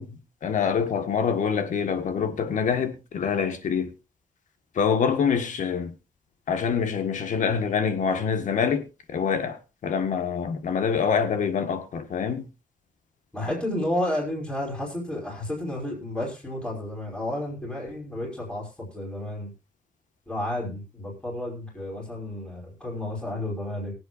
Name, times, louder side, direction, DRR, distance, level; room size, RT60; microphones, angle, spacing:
voice 1, 0.0-3.9 4.8-5.9 6.5-12.5, left 6 dB, 65° left, 1.7 m, -26 dB
voice 2, 13.3-19.5 20.3-23.9, left 1 dB, 5° left, 5.1 m, -31 dB
23.5 x 8.1 x 2.6 m
wide cardioid pair, 180°, 14 cm